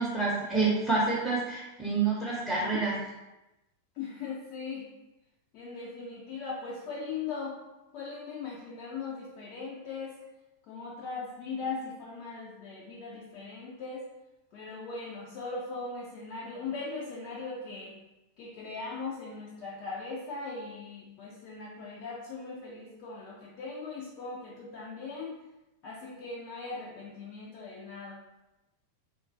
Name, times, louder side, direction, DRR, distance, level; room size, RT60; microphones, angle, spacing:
voice 1, 0.0-2.9, right 3 dB, 10° left, -6 dB, 0.8 m, -28 dB
voice 2, 4.0-4.9 5.5-7.6 7.9-10.2 10.7-14.1 14.5-18.0 18.4-25.4 25.8-28.1, left 4 dB, 45° left, -5 dB, 0.5 m, -39 dB
3.6 x 2.4 x 2.6 m, 0.99 s
figure-of-eight pair, 90°, 0 cm